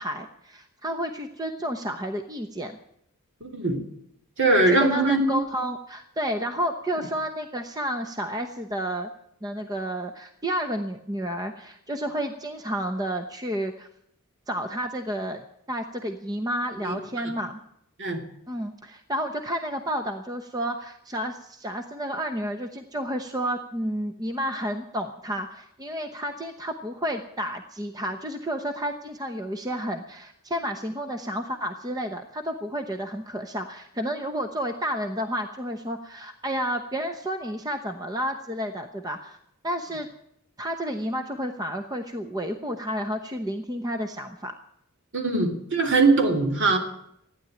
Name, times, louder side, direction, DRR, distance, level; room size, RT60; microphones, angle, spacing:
voice 1, 0.0-2.8 4.7-9.1 9.4-13.9 14.5-17.6 18.5-39.4 39.6-40.1 40.6-44.5, equal, 15° right, 6 dB, 0.9 m, -31 dB
voice 2, 3.4-3.8 4.4-5.4 16.8-16.9 18.0-18.2 45.1-46.8, right 3 dB, 55° right, 3 dB, 2.9 m, -21 dB
15.5 x 10.0 x 9.0 m, 0.75 s
head